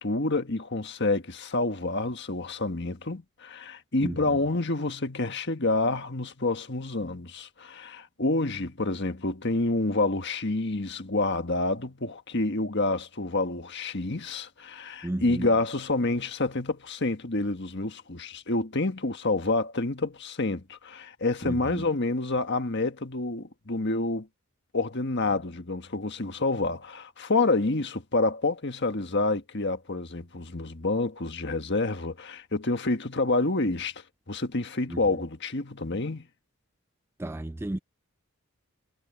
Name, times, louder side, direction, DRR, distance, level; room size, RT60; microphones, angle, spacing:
voice 1, 0.0-24.3 24.7-33.9 34.3-36.3, left 2 dB, 50° left, 1.6 m, -28 dB
voice 2, 4.0-4.4 15.0-15.5 21.4-21.8 34.9-35.0 37.2-37.8, right 1 dB, 10° right, 0.3 m, -33 dB
head